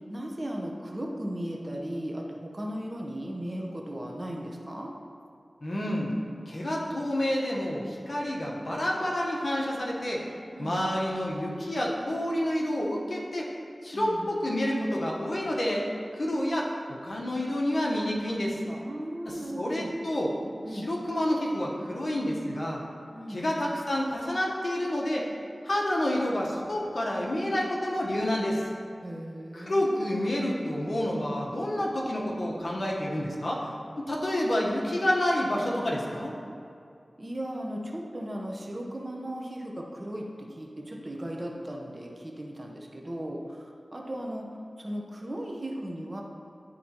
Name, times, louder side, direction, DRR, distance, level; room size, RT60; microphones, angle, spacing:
voice 1, 0.1-4.9 10.5-10.8 13.9-14.3 18.7-19.9 20.6-20.9 23.1-23.5 29.0-30.2 37.2-44.5 44.8-46.2, right 1 dB, 35° right, 0 dB, 0.9 m, -37 dB
voice 2, 5.6-6.1 6.5-10.2 10.6-13.5 13.8-18.6 19.6-20.3 20.8-22.8 23.3-25.3 25.6-28.6 29.5-33.7 34.0-36.3, left 1 dB, 55° left, -3 dB, 1.1 m, -29 dB
11.0 x 4.0 x 2.9 m, 2.5 s
cardioid pair, 45°, 0 cm